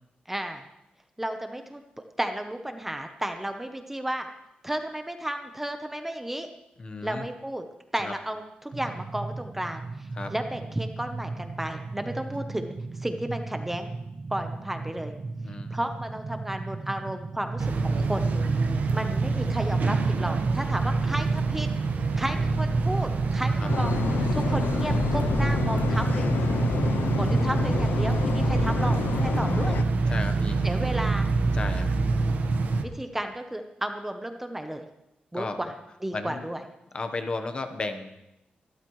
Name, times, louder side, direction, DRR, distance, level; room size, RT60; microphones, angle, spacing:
voice 1, 0.3-0.6 1.2-1.8 2.2-4.3 4.6-6.5 7.0-7.6 7.9-13.9 14.3-15.1 15.7-18.3 18.9-21.7 22.2-23.9 24.3-26.4 27.2-29.8 30.6-31.3 32.8-34.8 35.3-35.7 36.0-36.6, right 1 dB, 10° right, 6 dB, 0.8 m, -33 dB
voice 2, 6.8-7.3 8.0-8.1 10.1-10.3 12.3-12.4 15.4-15.8 23.6-23.7 30.1-30.7 31.5-31.9 35.3-35.6 36.1-36.4 36.9-38.1, left 3 dB, 30° left, 8 dB, 1.1 m, -34 dB
sound 1, 8.7-27.7, right 3 dB, 35° right, 0.8 m, -35 dB
sound 2, 17.6-32.8, right 3 dB, 60° right, 1.1 m, -26 dB
sound 3, 23.7-29.8, left 6 dB, 85° left, 0.6 m, -29 dB
24.0 x 13.0 x 3.1 m, 0.89 s
wide cardioid pair, 160°, 3 cm